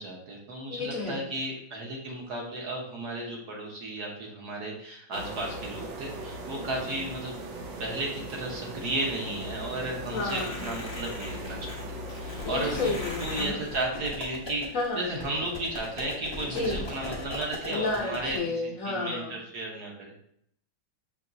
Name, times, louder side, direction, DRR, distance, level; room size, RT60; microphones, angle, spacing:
voice 1, 0.0-7.3 7.6-11.8 12.1-12.9 13.2-14.7 14.9-20.1, right 1 dB, 60° right, -2 dB, 1.4 m, -34 dB
voice 2, 0.7-1.2 10.1-10.7 12.4-13.6 14.7-15.0 16.5-16.8 17.7-19.4, left 3 dB, 60° left, -3 dB, 1.0 m, -31 dB
sound 1, 5.1-13.5, equal, 90° right, 1.5 m, -39 dB
sound 2, 10.2-18.4, left 2 dB, 35° left, 0.4 m, -40 dB
5.8 x 2.9 x 2.6 m, 0.68 s
omnidirectional pair, 2.0 m